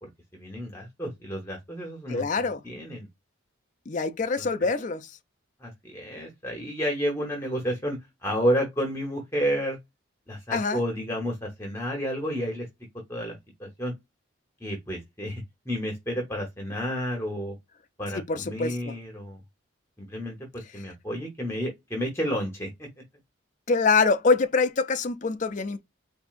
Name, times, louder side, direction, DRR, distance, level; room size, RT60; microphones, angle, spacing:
voice 1, 0.0-2.2 2.6-3.1 4.4-4.5 5.6-9.8 10.3-12.7 13.1-13.9 14.6-17.5 18.0-19.4 20.0-20.4 20.7-22.9, equal, 15° left, 1.0 m, -31 dB
voice 2, 2.1-2.6 3.9-5.1 10.5-10.8 18.3-19.0 23.7-25.8, left 4 dB, 40° left, 0.4 m, -25 dB
4.4 x 2.6 x 2.5 m
head